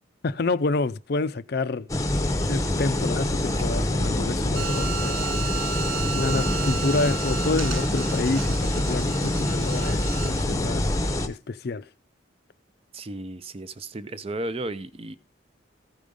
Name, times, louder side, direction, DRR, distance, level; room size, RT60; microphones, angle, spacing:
voice 1, 0.2-1.9 2.5-5.2 6.1-10.9 11.3-11.9, left 3 dB, 50° left, 0.4 m, -28 dB
sound 1, 1.9-11.3, left 1 dB, 15° left, 0.7 m, -25 dB
sound 2, 4.5-10.4, right 11 dB, 75° right, 0.6 m, -34 dB
voice 2, 12.9-15.2, right 2 dB, 30° right, 0.4 m, -34 dB
14.5 x 5.0 x 5.3 m
head